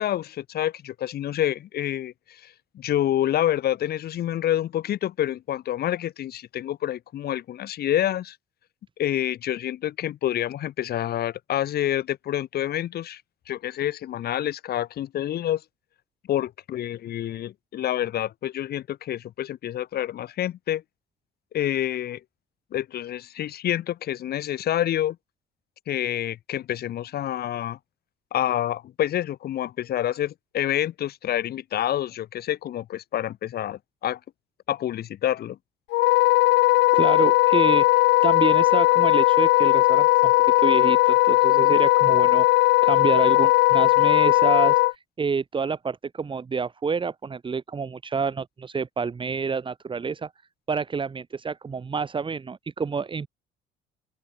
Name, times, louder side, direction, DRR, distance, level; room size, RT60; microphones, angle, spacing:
voice 1, 0.0-2.1 2.8-8.4 9.0-13.2 13.5-15.6 16.3-20.8 21.5-22.2 22.7-25.2 25.9-27.8 28.3-34.2 34.7-35.6, left 12 dB, 60° left, 3.5 m, -27 dB
Wind instrument woodwind instrument, 35.9-44.9, left 19 dB, 80° left, 0.8 m, -18 dB
voice 2, 36.9-40.3 40.6-50.3 50.7-53.3, right 5 dB, 30° right, 2.3 m, -28 dB
open air
cardioid pair, 110°, 18 cm